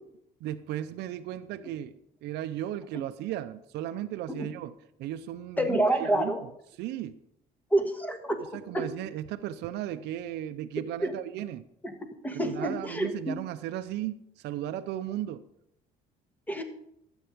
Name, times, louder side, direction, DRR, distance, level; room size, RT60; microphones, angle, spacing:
voice 1, 0.4-6.3 6.8-7.2 8.5-11.6 12.4-14.2 14.4-15.4, right 12 dB, 80° right, 9 dB, 0.6 m, -35 dB
voice 2, 5.6-6.4 7.7-8.4 8.7-8.9 11.0-11.1 11.8-11.9 12.2-13.4 16.5-16.6, right 1 dB, 10° left, 6 dB, 1.5 m, -28 dB
12.5 x 8.1 x 5.1 m, 0.77 s
cardioid pair, 110°, 17 cm